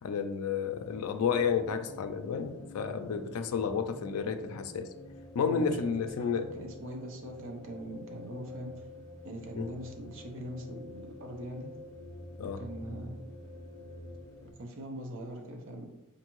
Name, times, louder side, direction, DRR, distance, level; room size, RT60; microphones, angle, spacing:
voice 1, 0.0-4.9 5.3-6.6 9.5-9.6 12.4-12.6, left 6 dB, 75° left, 8 dB, 0.4 m, -31 dB
sound 1, 0.8-14.5, left 2 dB, 15° left, 0.5 m, -48 dB
voice 2, 5.4-8.9 9.2-11.7 12.6-13.3 14.4-15.9, right 1 dB, 60° right, 2 dB, 0.7 m, -42 dB
4.4 x 2.6 x 2.9 m, 0.98 s
head